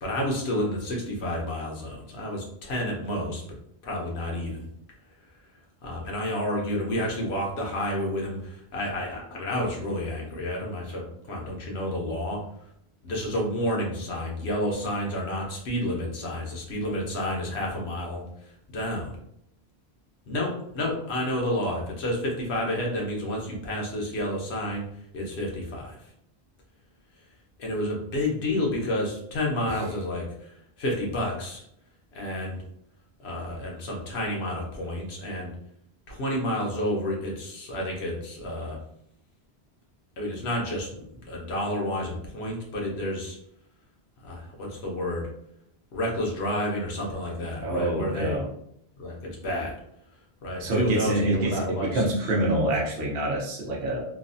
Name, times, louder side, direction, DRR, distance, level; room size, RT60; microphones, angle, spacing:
voice 1, 0.0-3.4 3.8-4.7 5.8-12.4 13.0-18.2 18.7-19.1 20.3-24.8 25.1-26.0 27.6-30.5 30.8-31.6 32.1-32.6 33.2-35.5 36.1-38.8 40.2-43.4 44.2-45.3 45.9-48.4 49.0-49.7 50.4-52.0, left 1 dB, 90° left, -1 dB, 1.1 m, -30 dB
voice 2, 47.6-48.4 50.6-51.6 51.9-54.0, right 1 dB, 70° right, -3 dB, 0.9 m, -26 dB
3.1 x 2.0 x 2.6 m, 0.73 s
omnidirectional pair, 1.1 m